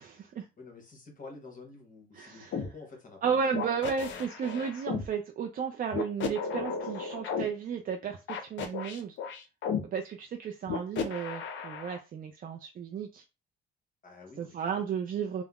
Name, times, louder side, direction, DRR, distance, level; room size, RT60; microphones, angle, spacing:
voice 1, 0.0-0.5 2.1-2.6 3.2-9.2 9.8-13.2 14.4-15.4, right 6 dB, 45° right, 0.4 m, -33 dB
voice 2, 0.6-3.6 14.0-14.9, left 3 dB, 40° left, 1.1 m, -49 dB
sound 1, 2.5-2.7 3.5-5.1 5.9-7.4 8.3-9.8 10.7-12.0, left 6 dB, 70° left, 0.6 m, -34 dB
3.4 x 2.0 x 2.3 m
cardioid pair, 90°, 20 cm